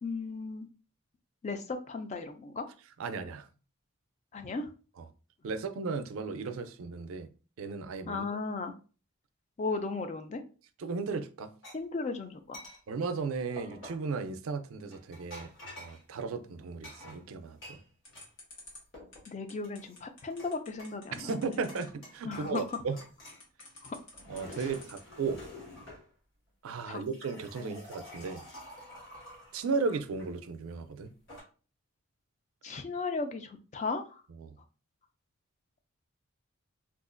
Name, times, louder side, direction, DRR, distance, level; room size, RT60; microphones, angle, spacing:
voice 1, 0.0-0.7 1.4-2.7 4.3-4.7 8.1-8.7 9.6-10.4 11.7-12.6 19.3-21.6 22.2-22.8 23.8-24.0 24.5-24.7 26.9-27.0 27.6-27.8 32.6-34.2, left 3 dB, 30° left, 0.3 m, -36 dB
voice 2, 3.0-3.5 5.0-5.1 5.4-7.3 7.6-8.2 10.8-11.5 12.9-15.5 15.8-17.8 21.2-23.0 24.3-25.4 26.6-28.4 29.5-31.1 34.4-34.5, right 4 dB, 75° right, 0.4 m, -35 dB
sound 1, 11.6-11.8 12.5-12.8 13.6-14.1 14.9-16.0 16.8-18.3 18.6-19.2 19.6-20.5 20.8-21.4 21.7-22.7 23.0-23.4 24.0-26.0 26.8-30.3 31.0-31.4, left 1 dB, 55° left, 1.5 m, -49 dB
sound 2, 18.0-25.2, left 2 dB, 80° left, 1.5 m, -51 dB
3.7 x 2.4 x 2.5 m
head